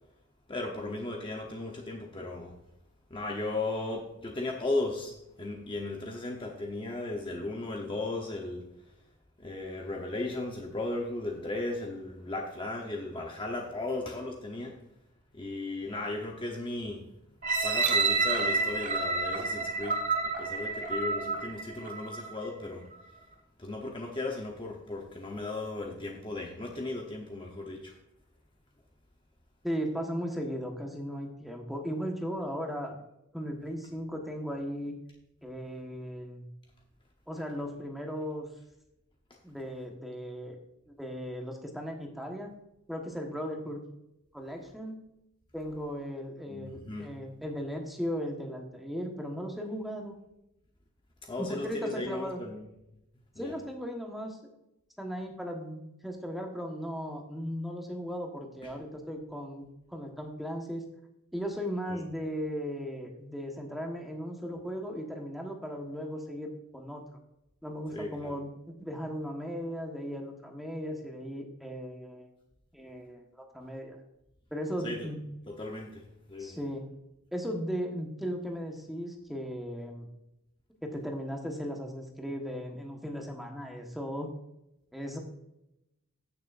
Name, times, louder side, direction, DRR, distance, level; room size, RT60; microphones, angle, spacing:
voice 1, 0.5-2.6 3.1-8.7 9.4-14.8 15.3-17.0 17.6-22.9 23.6-28.0 46.5-47.2 51.2-52.7 53.3-53.5 58.6-58.7 61.9-62.0 67.9-68.4 74.8-75.1 75.5-76.6, left 2 dB, 25° left, 1 dB, 1.0 m, -36 dB
sound 1, 17.4-22.4 22.9-23.0, right 4 dB, 35° right, 1.4 m, -29 dB
voice 2, 29.6-32.9 33.3-35.0 35.4-36.5 37.3-38.5 39.4-40.5 40.9-42.5 42.9-43.8 44.3-45.0 45.5-50.1 51.4-52.4 53.4-54.4 55.0-60.8 61.3-67.0 67.6-68.5 68.8-72.3 72.7-74.0 74.5-75.2 76.4-76.8 77.3-80.1 80.8-84.3 84.9-85.2, equal, ahead, 1 dB, 1.3 m, -37 dB
15.5 x 6.7 x 2.6 m, 0.86 s
head